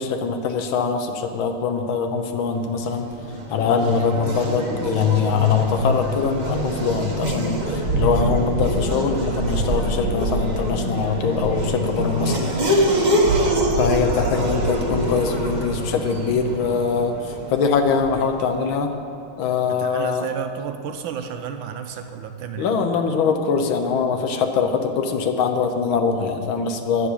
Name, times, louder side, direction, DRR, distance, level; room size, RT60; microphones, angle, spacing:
voice 1, 0.0-3.1 3.5-12.4 13.8-18.9 19.4-20.3 22.6-27.1, left 5 dB, 70° left, 6 dB, 1.6 m, -22 dB
Race car auto racing / Accelerating revving vroom, 2.7-18.4, right 1 dB, 30° right, 0.8 m, -25 dB
voice 2, 13.3-14.0 19.7-22.7, right 8 dB, 75° right, 7 dB, 1.3 m, -32 dB
10.5 x 6.9 x 8.4 m, 2.6 s
omnidirectional pair, 2.4 m